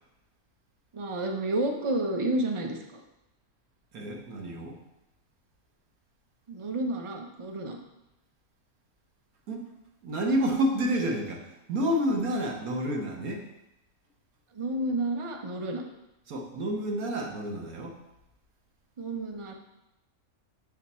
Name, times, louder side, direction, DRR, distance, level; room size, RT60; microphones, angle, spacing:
voice 1, 0.9-3.0 6.5-7.8 14.5-15.8 19.0-19.5, right 1 dB, 40° right, 3 dB, 0.4 m, -30 dB
voice 2, 3.9-4.8 9.5-9.7 10.0-13.4 16.3-18.0, equal, 85° right, 1 dB, 1.5 m, -29 dB
6.9 x 4.3 x 4.2 m, 0.91 s
omnidirectional pair, 1.5 m